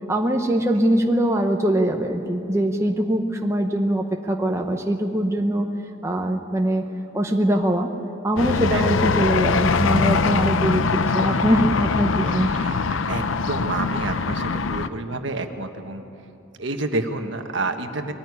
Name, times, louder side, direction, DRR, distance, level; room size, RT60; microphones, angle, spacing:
voice 1, 0.1-5.6 6.0-6.8 7.1-7.9 8.2-12.5, right 1 dB, 15° right, 2 dB, 0.8 m, -22 dB
sound 1, 8.4-14.9, left 4 dB, 70° left, 0.6 m, -22 dB
voice 2, 8.7-9.1 12.2-12.8 13.1-16.0 16.6-18.1, right 2 dB, 60° right, 5 dB, 1.4 m, -29 dB
21.5 x 14.5 x 9.7 m, 2.8 s
head